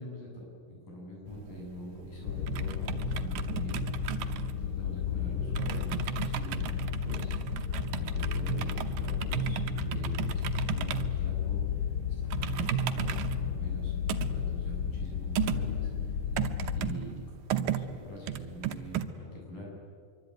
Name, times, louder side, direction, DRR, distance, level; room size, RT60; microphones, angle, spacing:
voice 1, 0.0-4.1 4.6-7.7 7.9-11.8 12.1-14.0 14.3-16.2 16.7-17.1 17.5-19.7, left 1 dB, 75° left, -2 dB, 9.7 m, -44 dB
sound 1, 1.3-19.0, right 10 dB, 75° right, 2.6 m, -35 dB
sound 2, 2.2-16.9, left 8 dB, 90° left, 1.2 m, -33 dB
26.0 x 24.0 x 9.3 m, 2.3 s
omnidirectional pair, 4.0 m